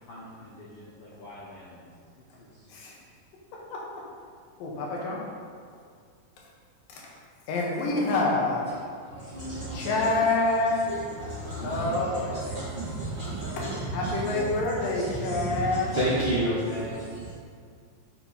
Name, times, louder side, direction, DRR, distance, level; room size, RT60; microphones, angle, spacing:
voice 1, 0.1-1.9 2.3-2.8 16.1-17.0, left 1 dB, 75° left, -7 dB, 1.3 m, -44 dB
voice 2, 3.5-4.0 4.6-5.2 7.0-7.2 7.5-8.7 9.7-10.9 11.6-12.4 13.6-15.9, left 2 dB, 90° left, -3 dB, 2.9 m, -27 dB
voice 3, 9.0-17.3, right 1 dB, 60° right, -9 dB, 1.3 m, -32 dB
6.7 x 5.7 x 4.0 m, 2.1 s
omnidirectional pair, 3.8 m